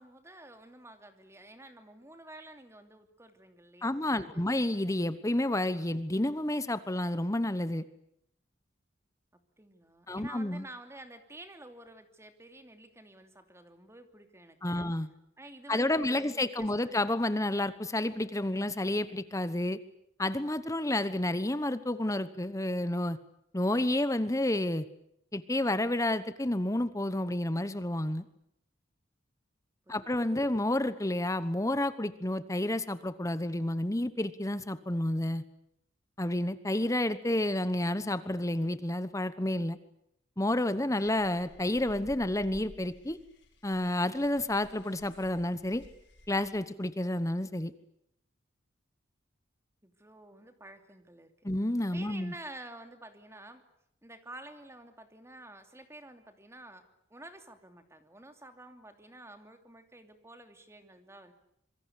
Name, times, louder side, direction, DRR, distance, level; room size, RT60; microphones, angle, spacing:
voice 1, 0.0-4.4 9.3-14.9 15.4-17.0 29.9-30.5 49.8-51.3 51.9-53.6 54.0-56.8 57.1-61.3, right 1 dB, 15° right, 7 dB, 2.9 m, -50 dB
voice 2, 3.8-7.8 10.1-10.6 14.6-15.1 15.7-19.8 20.2-23.2 23.5-24.9 25.3-28.2 29.9-35.4 36.2-39.8 40.4-43.2 43.6-45.8 46.3-47.7 51.4-52.3, left 1 dB, 15° left, 14 dB, 1.1 m, -30 dB
sound 1, 41.0-46.6, left 1 dB, 65° left, 5.2 m, -55 dB
26.0 x 23.5 x 8.4 m, 0.75 s
head